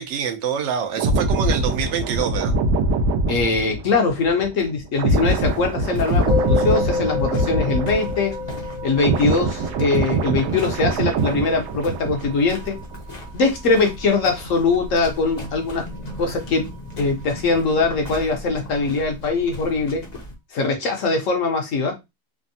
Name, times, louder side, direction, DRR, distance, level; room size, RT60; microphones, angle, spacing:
voice 1, 0.0-2.5, right 7 dB, 60° right, 0.8 m, -25 dB
sound 1, 1.0-8.5 8.7-12.5 12.7-13.0, right 2 dB, 90° right, 1.1 m, -23 dB
voice 2, 3.3-8.3 8.8-12.8 13.3-15.8 16.2-16.6 17.0-20.0 20.5-21.9, left 4 dB, 65° left, 1.0 m, -22 dB
sound 2, 5.1-20.4, left 1 dB, 45° left, 0.5 m, -37 dB
Musical instrument, 6.3-15.8, left 3 dB, 35° right, 0.4 m, -30 dB
3.3 x 2.0 x 2.6 m
omnidirectional pair, 1.6 m